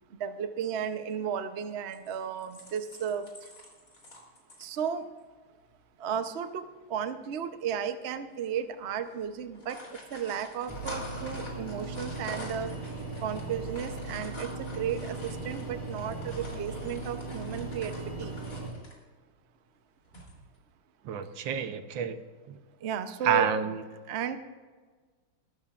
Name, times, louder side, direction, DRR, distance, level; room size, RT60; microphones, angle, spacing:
voice 1, 0.2-3.5 4.6-5.0 6.0-12.7 13.2-18.4 22.8-23.5 24.1-24.4, right 7 dB, 85° right, 9 dB, 0.5 m, -34 dB
sound 1, 1.9-4.8 5.2-5.3 5.6-5.8 6.1-6.2 7.2-7.6 8.1-8.3 8.6-8.8 9.4-19.0 20.0-20.6, left 1 dB, 40° left, 3.7 m, -47 dB
sound 2, 10.7-18.7, right 2 dB, 10° right, 4.9 m, -38 dB
voice 2, 21.0-22.2 22.5-22.6 23.2-23.8, right 8 dB, 70° right, 9 dB, 1.5 m, -29 dB
22.0 x 12.5 x 2.5 m, 1.4 s
omnidirectional pair, 2.3 m